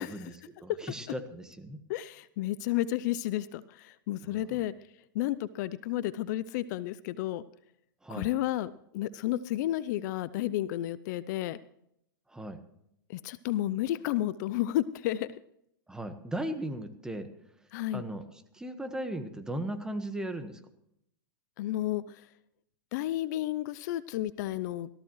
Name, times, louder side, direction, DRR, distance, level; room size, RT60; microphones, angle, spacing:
voice 1, 0.0-1.8 4.2-4.6 8.0-8.3 12.3-12.6 15.9-17.3 17.9-20.6, right 1 dB, 5° right, 8 dB, 1.3 m, -37 dB
voice 2, 1.9-4.7 5.1-7.4 8.1-11.6 13.1-15.4 17.7-18.0 21.6-22.2 22.9-24.9, left 14 dB, 55° left, 17 dB, 0.5 m, -32 dB
18.0 x 14.0 x 3.1 m, 0.76 s
hypercardioid pair, 125°, 11 cm